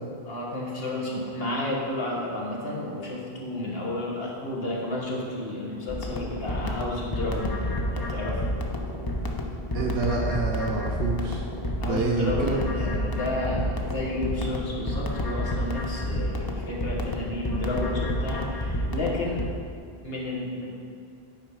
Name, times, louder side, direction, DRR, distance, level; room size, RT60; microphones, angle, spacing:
voice 1, 0.2-8.5 11.8-19.5 20.0-20.7, left 2 dB, 65° left, -3 dB, 1.6 m, -31 dB
sound 1, 5.9-19.5, left 1 dB, 25° left, 0.5 m, -30 dB
voice 2, 9.7-11.4 11.8-12.6, right 4 dB, 75° right, 0 dB, 0.9 m, -27 dB
8.9 x 5.0 x 4.7 m, 2.4 s
omnidirectional pair, 1.1 m